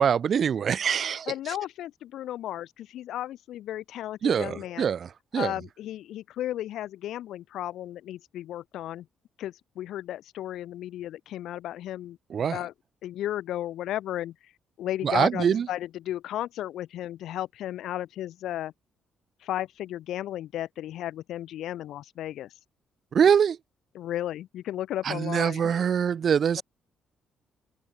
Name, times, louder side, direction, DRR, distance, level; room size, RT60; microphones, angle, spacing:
voice 1, 0.0-1.3 4.2-5.1 5.3-5.5 12.3-12.6 15.0-15.7 23.1-23.6 25.1-26.6, right 7 dB, 55° right, 0.4 m, -24 dB
voice 2, 1.3-4.9 5.3-9.1 9.4-12.7 13.0-14.3 14.8-18.7 19.4-22.5 23.9-25.7, left 12 dB, 80° left, 0.7 m, -34 dB
open air
cardioid pair, 90°, 0 cm